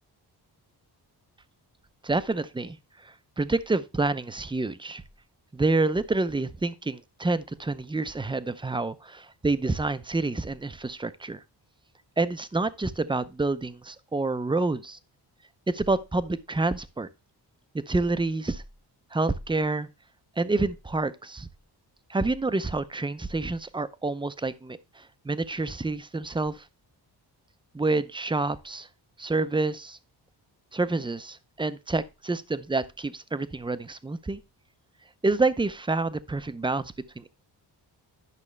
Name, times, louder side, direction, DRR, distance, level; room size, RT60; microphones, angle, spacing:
voice 1, 2.0-2.8 3.0-5.0 5.5-11.4 12.2-15.0 15.7-17.1 17.9-18.6 19.1-19.9 20.4-21.5 22.1-26.6 27.7-28.9 29.2-30.0 30.7-34.4 35.2-37.4, right 3 dB, 10° right, 0.6 m, -28 dB
11.0 x 6.2 x 3.3 m
wide cardioid pair, 110°, 42 cm